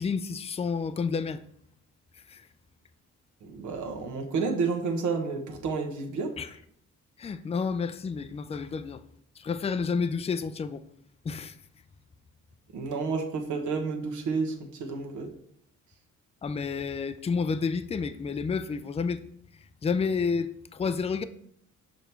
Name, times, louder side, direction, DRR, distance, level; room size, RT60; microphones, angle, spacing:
voice 1, 0.0-1.4 2.3-2.5 6.4-6.6 7.2-9.0 9.4-10.8 11.2-11.5 16.4-19.2 19.8-21.2, left 5 dB, 20° left, 0.4 m, -30 dB
voice 2, 3.5-6.3 12.7-14.5 14.9-15.3, right 4 dB, 75° right, 1.2 m, -30 dB
5.6 x 5.1 x 4.5 m
cardioid pair, 90°, 30 cm